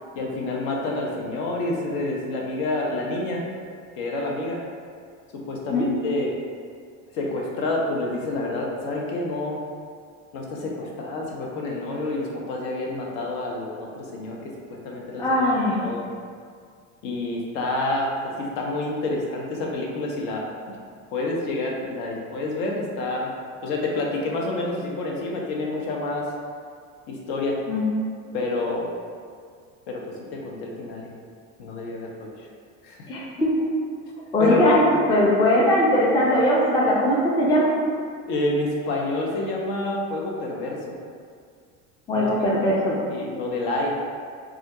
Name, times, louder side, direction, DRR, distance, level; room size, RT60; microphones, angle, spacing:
voice 1, 0.1-3.4 4.0-4.6 5.3-6.3 7.1-9.6 10.3-14.4 14.8-15.2 15.7-16.0 17.0-20.8 21.1-23.3 23.6-26.3 27.1-27.6 28.3-28.9 29.9-30.0 30.3-31.1 31.6-32.3 32.8-33.1 34.4-34.8 38.3-41.0 42.1-42.3 43.1-43.9, left 2 dB, 60° left, -2 dB, 0.6 m, -28 dB
voice 2, 15.2-15.9 27.7-27.9 33.1-33.5 34.3-37.7 42.1-43.0, left 1 dB, 10° left, -4 dB, 0.4 m, -20 dB
2.4 x 2.0 x 2.8 m, 2.1 s
hypercardioid pair, 70°, 40 cm